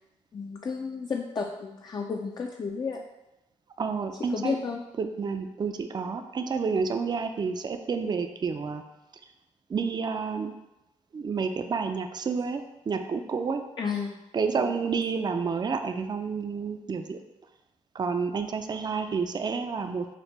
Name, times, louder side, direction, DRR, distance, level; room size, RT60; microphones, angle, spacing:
voice 1, 0.3-3.0 4.3-4.8 13.8-14.2 14.6-14.7, left 5 dB, 35° left, 1 dB, 0.4 m, -32 dB
voice 2, 3.8-4.6 5.0-8.8 9.7-10.5 11.1-13.6 14.3-17.2 17.9-20.1, right 5 dB, 35° right, 6 dB, 0.4 m, -29 dB
5.0 x 2.1 x 3.1 m, 0.97 s
cardioid pair, 60°, 13 cm